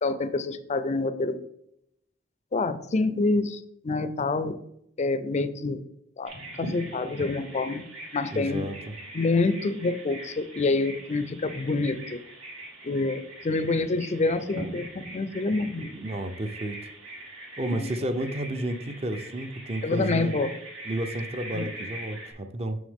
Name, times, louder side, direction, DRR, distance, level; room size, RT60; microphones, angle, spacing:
voice 1, 0.0-1.4 2.5-4.6 5.0-5.8 6.2-6.3 6.6-7.8 8.1-8.7 9.1-12.2 12.8-15.9 17.7-17.9 19.8-20.5 21.5-21.7, left 3 dB, 35° left, 12 dB, 0.4 m, -27 dB
Bird vocalization bird call bird song, 6.2-22.3, right 1 dB, 80° right, 2.6 m, -42 dB
voice 2, 8.3-8.9 15.9-16.8 17.6-20.3 20.9-22.8, right 1 dB, 30° right, 8 dB, 0.6 m, -31 dB
6.4 x 6.3 x 3.6 m, 0.76 s
head